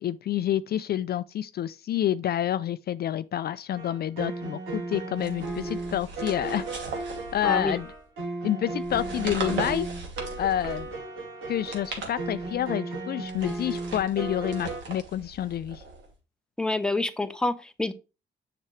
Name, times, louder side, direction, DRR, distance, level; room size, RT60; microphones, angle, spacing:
voice 1, 0.0-6.7 7.3-7.9 8.4-9.9 10.4-10.9 11.5-15.8, left 11 dB, 55° left, 0.4 m, -28 dB
sound 1, 3.7-14.8, right 3 dB, 85° right, 3.1 m, -35 dB
sound 2, 5.2-7.9 8.8-11.0 11.5-12.7 13.2-16.1, right 3 dB, 70° right, 2.6 m, -39 dB
voice 2, 7.4-7.8 16.6-17.9, left 2 dB, 5° left, 0.8 m, -27 dB
7.3 x 5.9 x 3.2 m
cardioid pair, 90°, 20 cm